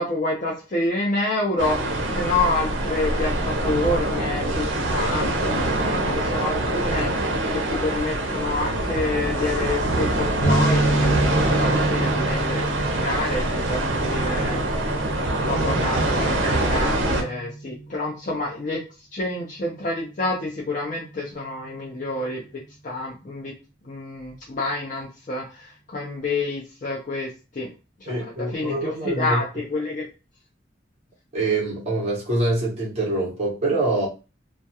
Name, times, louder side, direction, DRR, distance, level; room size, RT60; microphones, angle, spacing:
voice 1, 0.0-14.6 15.2-18.8 19.1-22.4 22.8-23.5 23.8-27.7 28.0-30.1, left 2 dB, 40° left, 0.5 m, -28 dB
sound 1, 1.6-17.2, right 1 dB, 80° right, 0.5 m, -24 dB
sound 2, 10.4-18.0, right 2 dB, 65° left, 1.1 m, -28 dB
voice 2, 28.1-29.4 31.3-34.1, right 2 dB, 35° right, 0.9 m, -25 dB
2.3 x 2.1 x 2.7 m
head